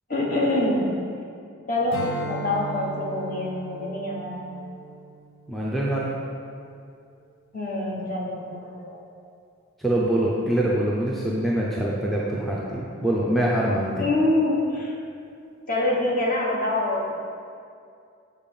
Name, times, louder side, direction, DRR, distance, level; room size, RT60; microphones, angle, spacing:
voice 1, 0.1-1.1 1.7-4.6 7.5-9.0 14.0-14.9 15.7-17.1, left 1 dB, 40° left, -2 dB, 1.1 m, -25 dB
Strum, 1.9-6.6, right 3 dB, 75° left, 1.0 m, -38 dB
voice 2, 5.5-6.1 9.8-14.1, right 1 dB, ahead, -6 dB, 0.5 m, -24 dB
7.2 x 4.5 x 5.5 m, 2.4 s
head